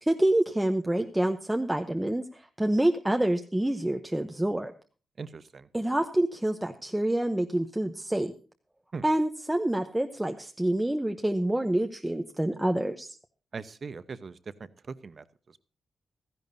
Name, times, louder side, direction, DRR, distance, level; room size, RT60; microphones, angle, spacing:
voice 1, 0.0-4.7 5.7-8.3 9.0-13.2, right 1 dB, 5° right, 4 dB, 0.8 m, -27 dB
voice 2, 5.2-5.7 8.9-9.0 13.5-14.4 15.0-15.2, right 4 dB, 40° right, 13 dB, 0.9 m, -39 dB
16.0 x 15.0 x 2.7 m, 0.36 s
wide cardioid pair, 150°, 0 cm